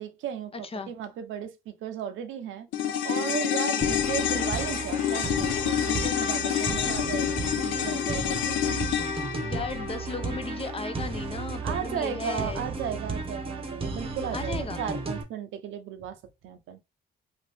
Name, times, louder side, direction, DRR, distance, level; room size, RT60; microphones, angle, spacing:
voice 1, 0.0-2.7 3.0-8.6 11.6-16.2 16.4-16.8, right 8 dB, 80° right, 0.6 m, -35 dB
voice 2, 0.5-0.9 9.4-12.7 14.3-14.8, left 4 dB, 30° left, 0.5 m, -36 dB
sound 1, 2.7-11.2 11.5-11.6, left 10 dB, 75° left, 0.5 m, -28 dB
sound 2, 3.8-15.2, right 3 dB, 30° right, 0.8 m, -34 dB
2.7 x 2.5 x 3.3 m
cardioid pair, 90°, 20 cm